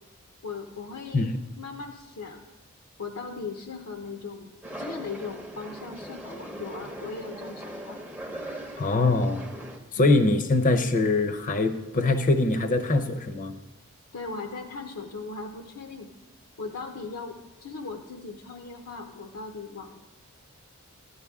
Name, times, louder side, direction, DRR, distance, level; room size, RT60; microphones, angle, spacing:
voice 1, 0.4-1.3 1.6-2.4 3.0-4.5 4.8-8.0 10.0-10.2 14.1-16.1 16.6-17.3 17.6-20.0, left 4 dB, 70° left, 4 dB, 0.8 m, -38 dB
sound 1, 4.6-9.8, right 1 dB, 10° right, 0.7 m, -40 dB
voice 2, 8.8-9.4 9.9-13.5, left 2 dB, 35° left, 8 dB, 0.7 m, -23 dB
13.0 x 9.7 x 3.6 m, 1.1 s
head